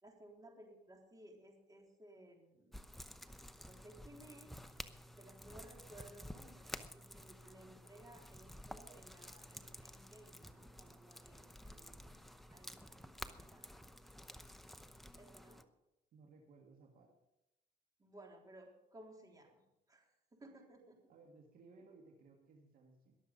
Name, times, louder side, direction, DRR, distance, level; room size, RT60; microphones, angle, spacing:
voice 1, 0.0-2.9 3.6-4.5 5.2-13.7 15.2-15.6 18.0-19.6 19.9-21.1, right 1 dB, 20° right, 1 dB, 3.7 m, -59 dB
sound 1, 2.7-15.6, equal, ahead, 0.8 m, -52 dB
voice 2, 16.1-17.1 21.1-23.2, right 3 dB, 55° right, 2 dB, 2.0 m, -61 dB
22.0 x 7.4 x 5.4 m, 0.89 s
cardioid pair, 110°, 17 cm